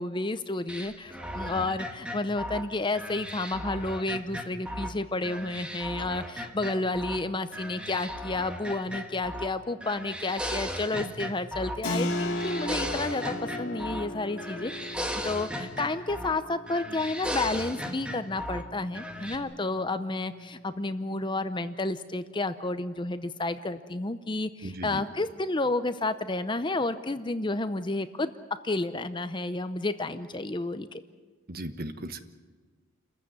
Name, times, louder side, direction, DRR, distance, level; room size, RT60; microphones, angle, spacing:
voice 1, 0.0-14.7 15.2-28.3 28.6-31.0, left 2 dB, 20° left, 11 dB, 0.6 m, -31 dB
sound 1, 0.7-5.0 5.2-7.2 7.5-9.5 9.8-11.8 12.1-14.1 14.4-16.4 16.7-18.6 18.9-19.4, equal, 5° right, 1.4 m, -36 dB
Keyboard (musical), 11.8-22.2, left 1 dB, 80° left, 2.2 m, -38 dB
voice 2, 24.6-25.0 31.5-32.2, right 1 dB, 40° right, 9 dB, 1.2 m, -36 dB
28.5 x 15.0 x 9.6 m, 1.5 s
head